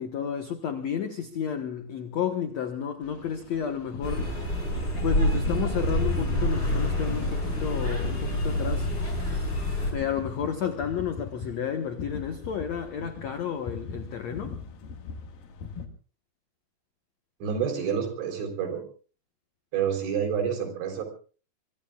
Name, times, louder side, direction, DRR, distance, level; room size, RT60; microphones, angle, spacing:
voice 1, 0.0-4.5 5.0-8.9 9.9-14.6, left 8 dB, 80° left, 6 dB, 1.5 m, -31 dB
sound 1, 3.0-15.9, left 4 dB, 60° left, 3.1 m, -40 dB
sound 2, 4.0-9.9, equal, 25° left, 7.0 m, -27 dB
voice 2, 17.4-18.8 19.7-21.0, right 7 dB, 90° right, 5 dB, 6.2 m, -28 dB
24.5 x 24.0 x 2.4 m, 0.38 s
omnidirectional pair, 5.2 m